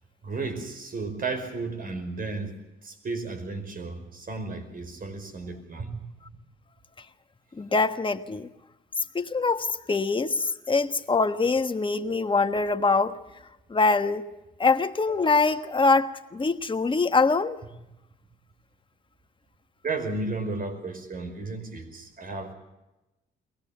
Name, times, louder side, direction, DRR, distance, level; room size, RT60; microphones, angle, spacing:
voice 1, 0.2-6.0 19.8-22.5, right 3 dB, 45° right, 8 dB, 5.0 m, -33 dB
voice 2, 7.6-8.5 9.1-13.2 13.7-14.2 14.6-17.5, left 4 dB, 25° left, 8 dB, 1.4 m, -24 dB
23.0 x 20.0 x 7.2 m, 0.97 s
cardioid pair, 90°, 20 cm